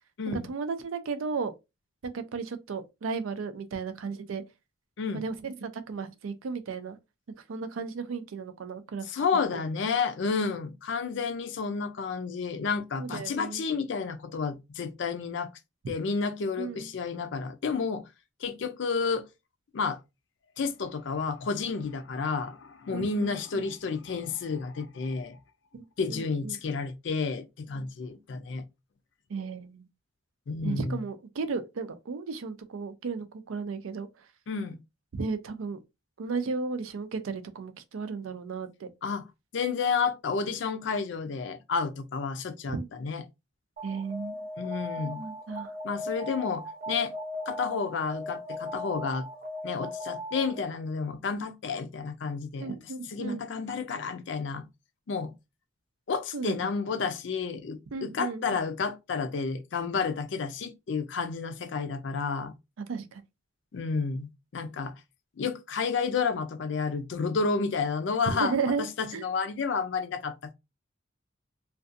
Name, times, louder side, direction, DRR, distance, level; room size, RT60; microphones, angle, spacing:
voice 1, 0.3-1.5 2.0-4.4 5.1-7.0 7.5-9.1 13.0-13.6 16.6-16.9 22.9-23.6 25.7-25.8 26.1-26.6 29.3-29.9 30.6-34.1 35.1-35.8 36.2-38.9 42.7-42.9 43.8-44.4 45.0-45.7 52.6-53.4 56.3-56.6 57.9-58.4 62.9-63.2 68.4-68.9 69.1-69.2, right 4 dB, 85° right, 0.4 m, -34 dB
voice 2, 9.1-15.5 15.9-18.1 18.4-19.2 19.7-20.0 20.6-25.4 26.0-28.6 30.5-31.0 34.5-34.8 39.0-39.3 39.5-43.2 44.6-45.2 45.8-47.1 47.5-49.3 49.6-52.8 53.1-54.6 55.1-55.3 56.1-62.5 63.7-64.9 65.4-70.5, left 5 dB, 65° left, 0.4 m, -31 dB
Alarm, 43.8-50.8, left 1 dB, 45° right, 0.7 m, -38 dB
2.5 x 2.3 x 2.5 m
head